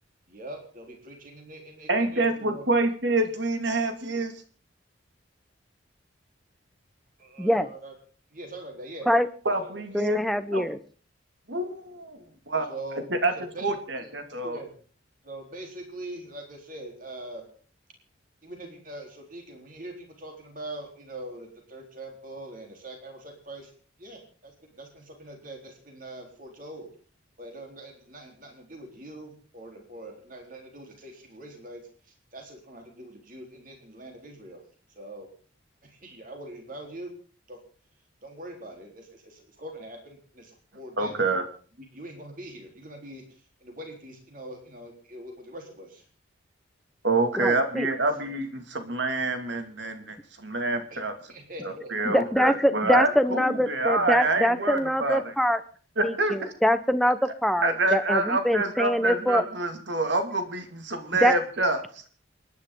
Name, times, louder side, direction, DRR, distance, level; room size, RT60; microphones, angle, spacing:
voice 1, 0.3-2.7 7.2-7.9 8.3-9.1 9.6-9.8 12.6-13.1 13.3-14.1 14.4-14.7 15.2-17.4 18.4-23.7 24.0-26.9 27.4-34.6 34.9-35.3 35.8-37.1 37.5-37.6 38.2-41.2 41.7-46.1 50.9-51.0 51.3-52.2, right 1 dB, 45° right, 2 dB, 4.0 m, -43 dB
voice 2, 1.9-4.3 9.5-10.2 10.5-10.6 11.5-12.7 13.2-13.3 13.6-14.6 41.0-41.4 47.0-51.1 51.9-55.3 56.0-56.5 57.6-61.8, right 2 dB, 70° right, 7 dB, 2.4 m, -27 dB
voice 3, 7.4-7.7 9.1-9.3 9.9-10.8 47.4-47.9 52.1-55.6 56.0-59.4 61.2-61.4, equal, ahead, 11 dB, 0.9 m, -24 dB
27.5 x 10.5 x 3.9 m, 0.43 s
head